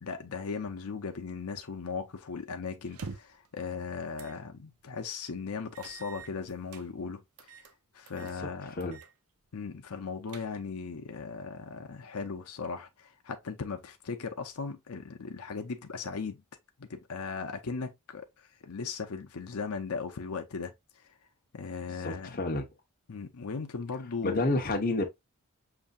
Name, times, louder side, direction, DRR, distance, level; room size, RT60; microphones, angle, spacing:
voice 1, 0.0-7.7 7.9-9.0 9.5-16.4 16.8-21.1 21.5-22.4 23.1-24.4, left 5 dB, 80° left, 0.7 m, -38 dB
sound 1, 2.9-3.5 4.2-4.4 4.8-4.9 5.7-6.9 7.4-7.7 8.1-8.4 8.8-9.1 9.4-9.5 10.0-10.8, right 4 dB, 75° right, 0.7 m, -46 dB
voice 2, 8.2-9.0 22.0-22.7 24.2-25.0, left 2 dB, 40° left, 1.0 m, -30 dB
6.8 x 2.7 x 2.4 m
head